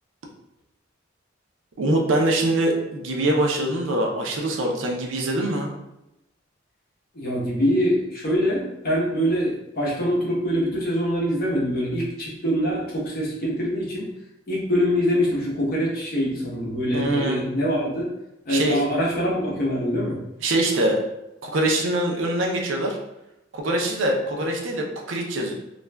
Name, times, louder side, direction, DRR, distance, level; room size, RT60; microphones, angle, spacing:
voice 1, 1.8-5.7 16.9-17.4 18.5-18.8 20.4-21.0 21.4-23.0 23.5-25.5, right 1 dB, 70° right, 0 dB, 0.5 m, -23 dB
voice 2, 7.1-14.1 14.5-18.1 18.4-20.2, equal, 50° left, -4 dB, 0.8 m, -24 dB
2.4 x 2.2 x 3.2 m, 0.90 s
head